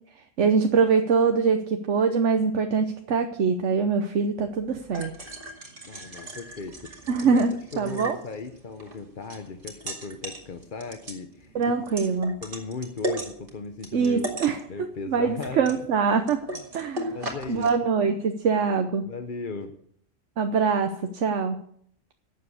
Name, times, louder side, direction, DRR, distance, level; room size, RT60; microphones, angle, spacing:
voice 1, 0.2-5.1 7.1-8.2 11.5-12.4 13.9-16.4 16.7-17.2 17.5-19.1 20.4-21.6, right 5 dB, 65° right, 6 dB, 1.2 m, -24 dB
sound 1, 4.4-17.7, right 1 dB, 40° right, 2.4 m, -38 dB
voice 2, 5.8-7.4 7.7-11.7 12.4-14.3 14.7-15.9 17.1-17.9 19.0-19.7, left 4 dB, 45° left, 6 dB, 1.0 m, -37 dB
11.5 x 7.9 x 8.4 m, 0.66 s
omnidirectional pair, 1.4 m